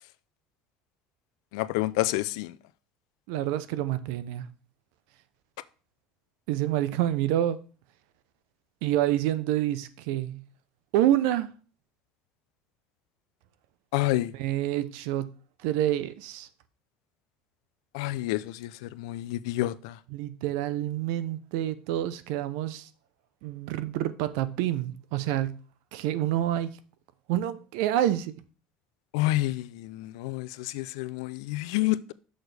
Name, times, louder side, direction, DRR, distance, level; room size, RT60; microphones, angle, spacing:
voice 1, 1.5-2.5 13.9-14.3 17.9-20.0 29.1-32.1, left 17 dB, 85° left, 0.4 m, -29 dB
voice 2, 3.3-4.4 6.5-7.6 8.8-10.4 10.9-11.5 14.3-15.3 15.6-16.5 20.1-22.9 23.4-25.6 25.9-26.8 27.3-28.3, right 12 dB, 80° right, 0.6 m, -27 dB
6.3 x 6.3 x 3.4 m
cardioid pair, 125°, 3 cm